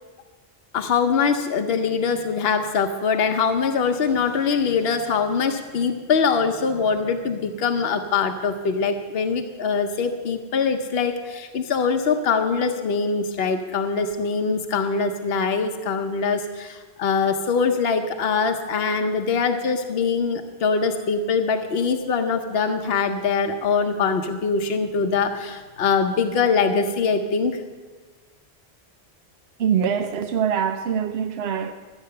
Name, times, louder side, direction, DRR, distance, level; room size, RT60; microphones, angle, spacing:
voice 1, 0.7-27.6, left 5 dB, 70° left, 6 dB, 1.0 m, -23 dB
voice 2, 29.6-31.7, right 8 dB, 80° right, 6 dB, 0.9 m, -23 dB
13.0 x 9.0 x 6.6 m, 1.4 s
omnidirectional pair, 1.1 m